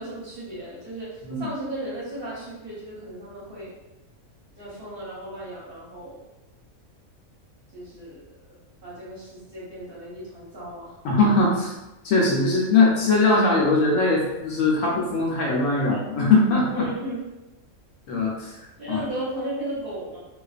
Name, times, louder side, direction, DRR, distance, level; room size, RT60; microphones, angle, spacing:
voice 1, 0.0-3.7 4.6-6.3 7.7-8.6 8.8-10.9 16.7-17.2 18.8-20.2, right 1 dB, 45° right, -8 dB, 0.9 m, -35 dB
voice 2, 11.0-11.7 12.0-16.8 18.1-18.5 18.9-19.0, left 3 dB, 70° left, -3 dB, 0.9 m, -20 dB
2.5 x 2.4 x 2.3 m, 1.0 s
omnidirectional pair, 1.4 m